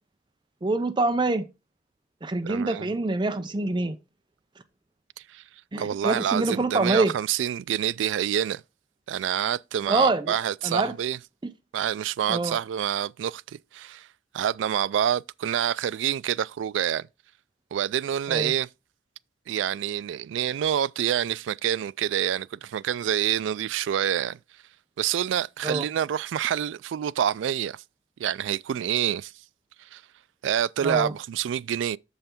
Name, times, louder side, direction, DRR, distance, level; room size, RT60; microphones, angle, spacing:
voice 1, 0.6-1.4 2.2-4.0 5.7-7.1 9.9-10.4 10.6-10.9 12.3-12.6 18.3-18.5 25.6-25.9 30.8-31.1, right 2 dB, 25° right, 0.5 m, -25 dB
voice 2, 2.4-2.9 5.3-5.4 5.8-8.6 9.1-11.2 11.7-14.1 14.3-17.1 17.7-18.7 19.5-24.4 25.0-27.8 28.2-29.3 29.8-30.0 30.4-32.0, right 9 dB, 80° right, 0.3 m, -27 dB
6.8 x 5.6 x 4.4 m
head